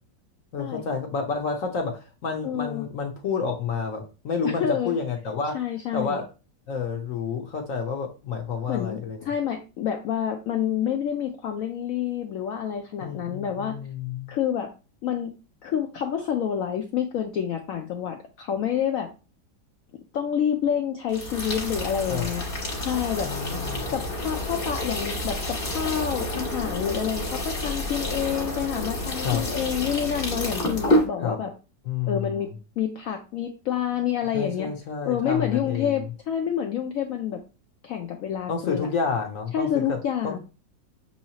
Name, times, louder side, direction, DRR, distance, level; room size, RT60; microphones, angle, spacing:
voice 1, 0.5-5.6 5.9-6.2 6.7-9.3 13.0-14.3 22.1-22.3 23.2-24.0 29.2-29.5 31.2-31.4 31.9-32.5 34.3-36.0 38.5-40.0 40.2-40.4, left 5 dB, 60° left, 3 dB, 0.9 m, -29 dB
voice 2, 2.4-2.9 4.4-4.9 5.5-6.2 8.7-13.7 14.3-14.7 15.0-15.3 15.6-19.1 20.1-22.4 22.8-23.3 23.9-31.5 32.1-32.5 32.8-34.7 35.1-37.4 37.8-38.9 39.5-40.4, left 9 dB, 85° left, 4 dB, 0.7 m, -28 dB
sound 1, 21.1-31.1, left 1 dB, 35° left, 1.4 m, -29 dB
6.2 x 2.9 x 2.8 m, 0.32 s
omnidirectional pair, 2.0 m